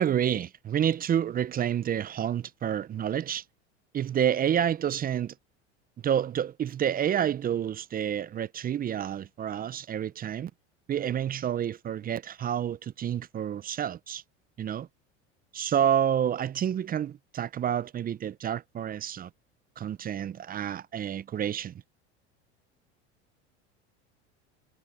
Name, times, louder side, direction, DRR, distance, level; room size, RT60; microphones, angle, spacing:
voice 1, 0.0-3.4 3.9-5.3 6.0-10.5 10.9-14.2 14.6-14.9 15.5-19.3 19.8-21.7, right 9 dB, 25° right, 0.6 m, -29 dB
hypercardioid pair, 95°, 34 cm